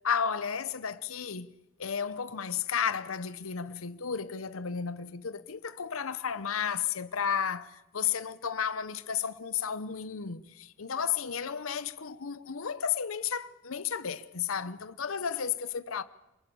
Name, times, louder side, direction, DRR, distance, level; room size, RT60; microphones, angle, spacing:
voice 1, 0.0-1.5 1.8-16.0, left 7 dB, 85° left, 0.9 m, -33 dB
27.0 x 20.0 x 7.1 m
head